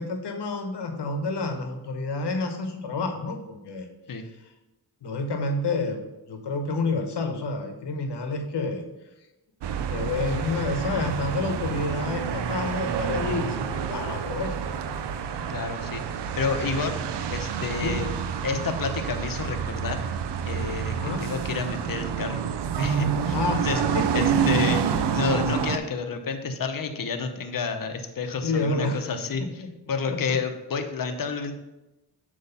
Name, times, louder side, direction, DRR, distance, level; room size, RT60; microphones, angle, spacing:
voice 1, 0.0-3.9 5.0-6.0 6.3-8.9 9.9-15.0 17.8-18.0 20.9-21.2 23.3-23.6 23.9-24.2 28.4-29.0 29.4-29.7 30.1-30.4, left 3 dB, 75° left, 5 dB, 1.1 m, -29 dB
sound 1, 9.6-25.8, right 7 dB, 75° right, 0.6 m, -28 dB
voice 2, 15.5-16.0 16.3-17.0 17.3-18.1 18.4-20.0 20.5-22.4 22.8-23.8 24.1-24.8 25.1-29.6 29.9-31.5, left 5 dB, 55° left, 7 dB, 0.8 m, -30 dB
7.9 x 3.1 x 5.6 m, 0.99 s
cardioid pair, 80°, 41 cm